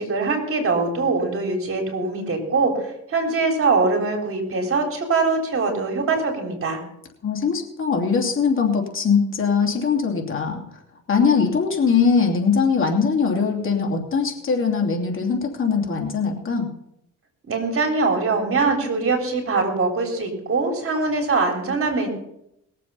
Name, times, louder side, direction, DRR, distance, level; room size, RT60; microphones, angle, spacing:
voice 1, 0.0-6.8 17.5-22.1, right 3 dB, 45° right, 3 dB, 3.6 m, -22 dB
voice 2, 7.2-10.6 11.1-16.7, left 5 dB, 45° left, 1 dB, 2.8 m, -21 dB
20.5 x 7.6 x 5.6 m, 0.80 s
cardioid pair, 90°, 30 cm